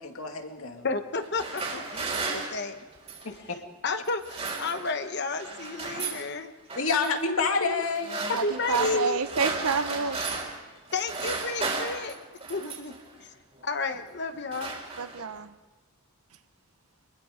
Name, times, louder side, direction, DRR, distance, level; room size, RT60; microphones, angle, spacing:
voice 1, 0.0-0.9 3.2-3.4 6.7-8.1, left 4 dB, 70° left, 4 dB, 2.4 m, -28 dB
voice 2, 0.8-2.7 3.8-6.5 8.3-9.2 10.9-12.2 12.5-12.9 13.2-13.3 13.6-14.7, left 3 dB, 50° left, 8 dB, 1.0 m, -31 dB
sound 1, 1.2-3.4 4.1-5.1 5.3-6.3 6.7-7.1 7.8-10.6 10.9-13.0 13.8-14.0 14.3-15.4, right 3 dB, 30° right, 4.2 m, -34 dB
voice 3, 8.3-10.2 15.0-15.5, right 5 dB, 80° right, 11 dB, 0.9 m, -28 dB
25.0 x 21.5 x 5.1 m, 1.2 s
head